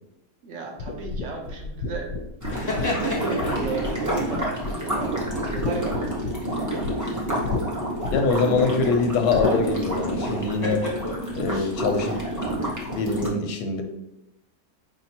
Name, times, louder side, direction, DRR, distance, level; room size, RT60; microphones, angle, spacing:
voice 1, 0.4-2.1 2.8-6.0, right 4 dB, 60° right, 1 dB, 0.8 m, -34 dB
sound 1, 0.8-4.0 4.3-5.0 5.3-7.0 7.4-7.6 8.0-8.5 9.3-9.6, left 3 dB, 65° left, 0.8 m, -31 dB
sound 2, 2.4-13.3, right 1 dB, 25° right, 0.4 m, -29 dB
sound 3, 2.5-3.9 7.0-7.6 10.2-11.8, left 2 dB, 35° left, 0.8 m, -32 dB
voice 2, 8.1-10.8 11.4-12.2 12.9-13.8, left 4 dB, 90° left, 5 dB, 1.1 m, -24 dB
4.9 x 2.9 x 2.7 m, 0.85 s
omnidirectional pair, 1.7 m